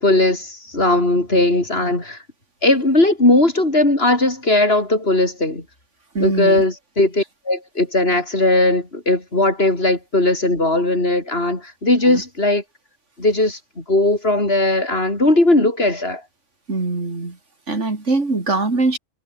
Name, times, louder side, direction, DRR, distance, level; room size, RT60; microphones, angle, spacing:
voice 1, 0.0-2.2 2.6-5.6 6.2-12.6 13.2-16.2, left 2 dB, 55° left, 5.2 m, -18 dB
voice 2, 6.1-6.6 12.1-12.2 16.7-17.4 17.7-19.0, right 3 dB, 90° right, 3.8 m, -22 dB
omnidirectional pair, 1.2 m